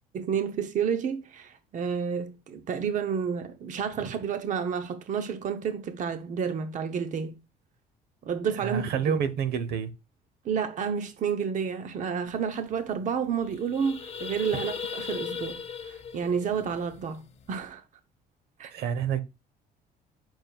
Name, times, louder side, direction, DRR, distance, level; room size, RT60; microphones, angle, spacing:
voice 1, 0.1-7.4 8.2-8.8 10.4-17.8 18.6-18.8, right 7 dB, 50° right, 0.8 m, -30 dB
voice 2, 8.6-9.9 18.7-19.2, right 7 dB, 75° right, 1.0 m, -28 dB
sound 1, 12.4-12.5 12.7-13.0 13.3-17.6, left 6 dB, 40° left, 0.8 m, -38 dB
8.7 x 6.2 x 2.3 m
cardioid pair, 110°, 17 cm